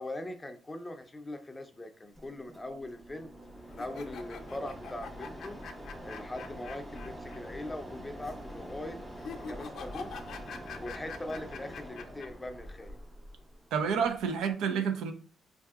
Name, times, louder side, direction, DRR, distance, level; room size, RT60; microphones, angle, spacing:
voice 1, 0.0-3.3 3.7-5.6 6.0-9.0 9.4-10.1 10.8-13.0, left 1 dB, 20° left, 0.5 m, -41 dB
Mechanisms, 2.1-14.5, equal, 25° right, 1.3 m, -45 dB
sound 1, 3.7-7.4 7.6-7.7 9.2-12.3, left 6 dB, 65° left, 0.5 m, -45 dB
voice 2, 13.7-15.1, right 6 dB, 85° right, 0.5 m, -29 dB
4.7 x 2.7 x 2.3 m
cardioid pair, 90°, 0 cm